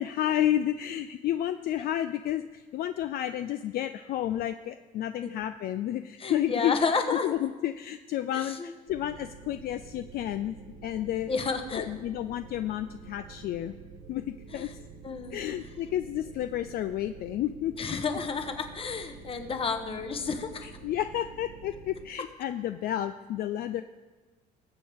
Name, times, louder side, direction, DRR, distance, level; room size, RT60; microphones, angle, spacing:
voice 1, 0.0-6.8 7.1-10.6 10.8-11.3 11.7-13.7 14.1-14.7 15.3-17.7 20.6-23.8, left 12 dB, 65° left, 10 dB, 0.4 m, -31 dB
voice 2, 6.2-7.3 8.3-8.7 11.3-11.8 14.5-14.7 15.0-15.4 17.8-20.7, left 5 dB, 35° left, 7 dB, 1.1 m, -31 dB
sound 1, 8.9-22.1, right 5 dB, 65° right, 0.9 m, -48 dB
19.5 x 7.8 x 3.5 m, 1.3 s
cardioid pair, 110°, 17 cm